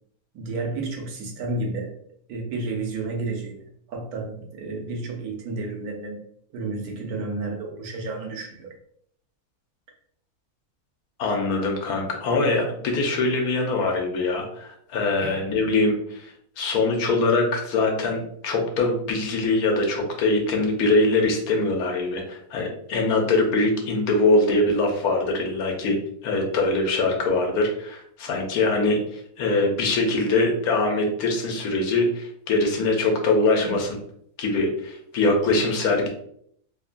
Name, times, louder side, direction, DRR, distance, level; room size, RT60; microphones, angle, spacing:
voice 1, 0.3-1.9 2.3-6.2 6.5-8.7 15.2-15.4 33.6-33.8, right 3 dB, 85° right, 1 dB, 1.2 m, -31 dB
voice 2, 11.2-18.2 18.4-26.0 26.2-34.0 34.4-36.1, left 2 dB, 90° left, 2 dB, 1.2 m, -23 dB
3.1 x 2.2 x 2.4 m, 0.66 s
omnidirectional pair, 1.6 m